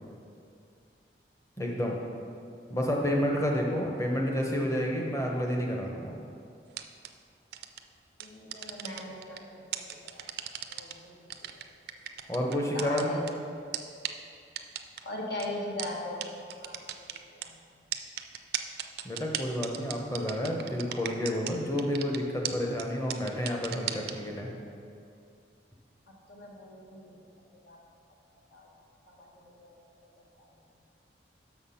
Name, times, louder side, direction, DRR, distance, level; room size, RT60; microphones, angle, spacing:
voice 1, 1.6-1.9 2.7-6.1 12.3-13.0 19.0-24.5, equal, 15° left, 0 dB, 0.8 m, -30 dB
sound 1, 6.7-7.1 7.5-7.8 8.2-9.4 9.7-10.9 11.3-13.3 13.7-13.8 14.0-14.1 14.6-15.0 15.4-15.5 15.8-15.9 16.2-16.3 16.5-17.5 17.9-21.5 21.8-22.2 22.4-22.5 22.8-22.9 23.1-24.1, right 11 dB, 60° right, 0.4 m, -35 dB
voice 2, 8.2-10.3 10.7-11.6 12.7-13.2 15.0-17.0 17.3-17.5 26.3-27.2 27.7-27.8 28.5-28.7 29.1-30.5, left 1 dB, 75° left, -2 dB, 1.4 m, -40 dB
6.3 x 5.8 x 5.7 m, 2.4 s
head